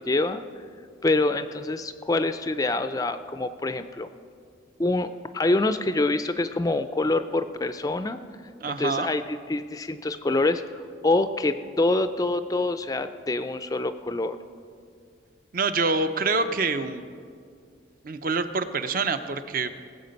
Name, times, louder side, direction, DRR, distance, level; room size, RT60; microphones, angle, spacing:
voice 1, 0.1-0.4 1.0-4.1 4.8-8.2 8.8-14.4, left 2 dB, 20° left, 11 dB, 0.3 m, -26 dB
voice 2, 8.6-9.1 15.5-17.0 18.0-19.7, right 4 dB, 45° right, 10 dB, 0.6 m, -26 dB
19.0 x 7.7 x 5.3 m, 2.2 s
head